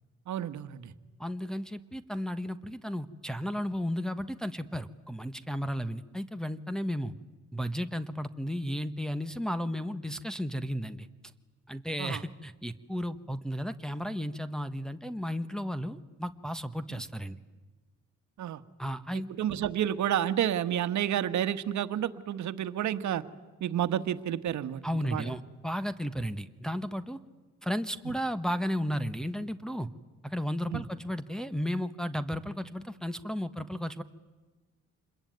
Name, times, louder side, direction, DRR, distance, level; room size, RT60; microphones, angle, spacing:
voice 1, 0.3-0.9 12.0-12.2 18.4-18.6 19.1-23.2 23.6-25.4 28.0-28.1 30.7-30.8, right 10 dB, 70° right, 12 dB, 1.4 m, -30 dB
voice 2, 1.2-7.1 7.5-11.1 11.7-17.4 18.8-19.3 24.8-27.2 27.6-29.9 30.2-34.0, equal, ahead, 7 dB, 1.2 m, -34 dB
27.0 x 21.5 x 9.4 m, 1.3 s
cardioid pair, 90°, 30 cm